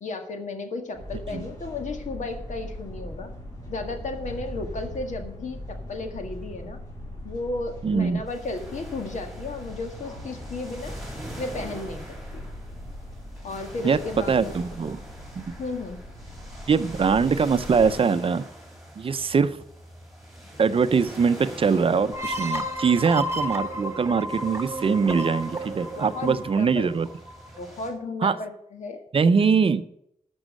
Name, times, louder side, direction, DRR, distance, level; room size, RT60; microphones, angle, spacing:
voice 1, 0.0-3.3 3.7-6.8 7.2-10.9 11.4-12.0 12.3-12.5 13.4-14.5 15.6-16.0 25.9-26.9 27.6-29.0, left 3 dB, 70° left, 5 dB, 1.8 m, -34 dB
sound 1, 0.9-17.9, left 1 dB, 25° left, 5.4 m, -40 dB
voice 2, 7.8-8.2 13.8-15.0 15.4-15.5 16.7-18.5 19.0-19.6 20.6-27.1 28.2-28.4 29.1-29.8, right 5 dB, 45° right, 12 dB, 0.6 m, -22 dB
sound 2, 8.3-27.9, right 1 dB, ahead, 3.7 m, -44 dB
sound 3, 22.1-27.6, equal, 20° right, 1.2 m, -32 dB
12.5 x 6.2 x 6.5 m, 0.71 s
wide cardioid pair, 165°, 13 cm